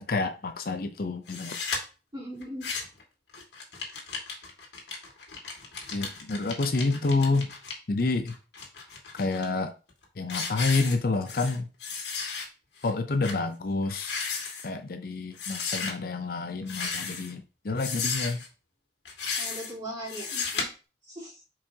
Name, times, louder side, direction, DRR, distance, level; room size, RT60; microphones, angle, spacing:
voice 1, 0.0-1.5 5.9-7.5 7.9-8.3 9.1-9.7 10.2-11.7 12.8-14.1 14.6-18.4, left 3 dB, 55° left, 0.5 m, -28 dB
sound 1, 1.3-1.8 2.4-3.0 3.3-7.7 8.3-9.4 9.9-10.0 10.3-11.5 11.8-12.4 12.8-12.9 13.2-13.4 13.8-14.7 15.4-15.9 16.6-17.3 17.8-18.5 19.0-19.7 20.1-20.6, left 5 dB, 75° left, 1.9 m, -34 dB
voice 2, 2.1-2.7 19.4-20.7 21.1-21.4, equal, 25° right, 3.3 m, -39 dB
7.1 x 4.8 x 2.8 m
head